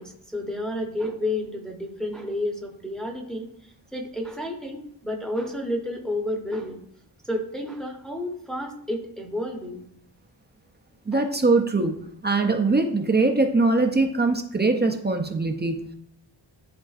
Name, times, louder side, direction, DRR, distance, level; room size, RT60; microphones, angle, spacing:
voice 1, 0.0-6.8 7.2-9.8, left 1 dB, ahead, 1 dB, 0.9 m, -31 dB
voice 2, 11.1-15.9, right 3 dB, 20° right, 4 dB, 0.5 m, -22 dB
10.5 x 3.7 x 2.4 m, 0.74 s
wide cardioid pair, 130°, 47 cm